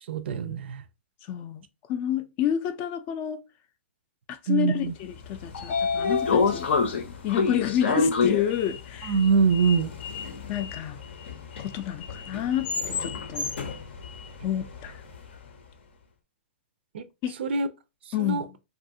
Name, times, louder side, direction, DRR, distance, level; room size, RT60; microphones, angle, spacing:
voice 1, 0.1-0.8 4.5-4.9 9.1-9.9 16.9-17.1 17.4-17.7 18.2-18.4, right 5 dB, 65° right, 0.4 m, -23 dB
voice 2, 1.3-3.4 4.3-6.7 7.2-9.1 10.5-11.0 11.6-13.5 14.4-15.0 17.2-17.4 18.1-18.5, left 10 dB, 30° left, 0.3 m, -29 dB
Sliding door, 5.1-15.3, left 5 dB, 65° left, 0.7 m, -29 dB
2.7 x 2.4 x 2.6 m
hypercardioid pair, 145°, 6 cm